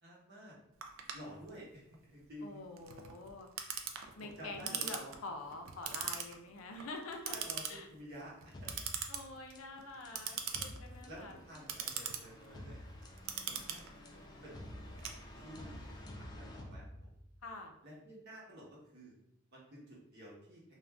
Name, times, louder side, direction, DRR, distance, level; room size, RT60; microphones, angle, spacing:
voice 1, 0.0-0.6 1.1-2.6 4.2-5.1 7.3-8.9 11.1-12.8 13.5-14.5 15.3-17.1 17.8-19.1 19.5-20.6, equal, 55° right, -5 dB, 0.9 m, -51 dB
Clock, 0.8-15.7, right 7 dB, 70° right, 0.3 m, -43 dB
voice 2, 2.4-3.5 4.1-7.4 7.7-7.9 9.1-11.3 17.4-17.7, left 2 dB, 85° left, 4 dB, 0.5 m, -46 dB
sound 1, 8.5-17.5, left 1 dB, 20° left, 0.3 m, -50 dB
2.5 x 2.2 x 3.3 m, 0.80 s
head